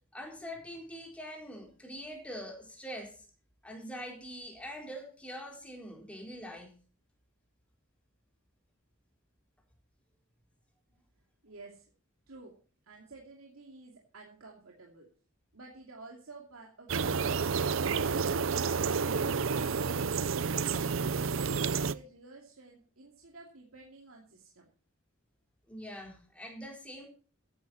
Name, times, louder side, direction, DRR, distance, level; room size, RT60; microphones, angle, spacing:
voice 1, 0.1-3.1 3.6-6.7 25.7-27.1, equal, 5° left, 0 dB, 4.1 m, -43 dB
voice 2, 11.4-11.8 12.3-12.5 12.9-15.1 15.5-17.5 20.8-24.7, right 3 dB, 85° right, -1 dB, 2.7 m, -51 dB
sound 1, 16.9-21.9, right 5 dB, 65° right, 0.6 m, -30 dB
14.5 x 11.0 x 4.2 m, 0.39 s
head